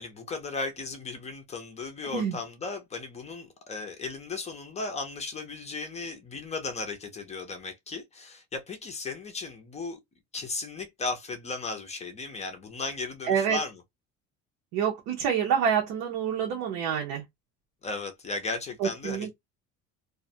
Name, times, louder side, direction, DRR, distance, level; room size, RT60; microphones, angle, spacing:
voice 1, 0.0-10.0 10.3-13.8 17.8-19.3, left 3 dB, 20° left, 0.4 m, -36 dB
voice 2, 13.3-13.6 14.7-17.2 18.8-19.3, right 8 dB, 85° right, 0.8 m, -27 dB
2.4 x 2.1 x 2.6 m
cardioid pair, 165°, 31 cm